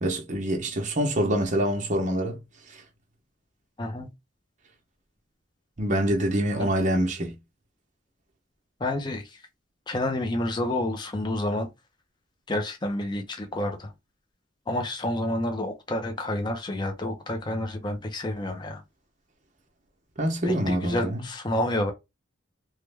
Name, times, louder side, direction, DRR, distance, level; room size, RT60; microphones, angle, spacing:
voice 1, 0.0-2.4 5.8-7.4 20.2-21.2, right 1 dB, 35° right, 0.8 m, -25 dB
voice 2, 3.8-4.1 6.6-6.7 8.8-9.4 9.9-11.7 12.5-13.9 14.7-18.8 20.5-21.9, left 1 dB, 20° left, 0.5 m, -29 dB
3.1 x 2.2 x 3.3 m
head